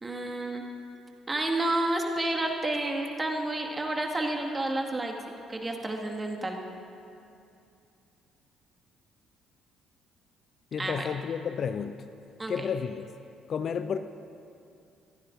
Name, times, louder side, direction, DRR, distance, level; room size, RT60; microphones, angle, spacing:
voice 1, 0.0-0.6 1.3-5.1 5.5-6.6 10.8-11.1 12.4-12.6, right 2 dB, 20° right, 1 dB, 2.0 m, -30 dB
voice 2, 10.7-12.0 12.5-13.1 13.5-14.0, left 7 dB, 50° left, 11 dB, 0.4 m, -31 dB
22.0 x 15.0 x 2.6 m, 2.5 s
figure-of-eight pair, 45°, 0 cm